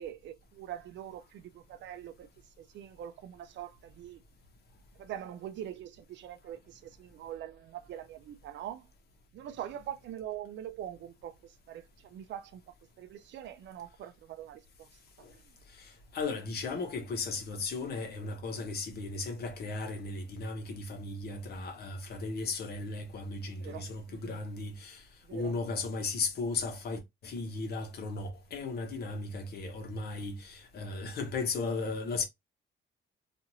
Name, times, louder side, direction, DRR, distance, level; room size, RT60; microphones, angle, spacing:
voice 1, 0.0-2.3 2.6-4.2 5.0-8.9 9.3-12.6 13.0-14.9 15.3-15.4 23.5-24.4 25.2-25.6, right 11 dB, 65° right, 0.4 m, -43 dB
voice 2, 15.7-25.0 25.3-32.2, left 3 dB, 55° left, 0.9 m, -36 dB
2.9 x 2.5 x 2.6 m
cardioid pair, 160°, 20 cm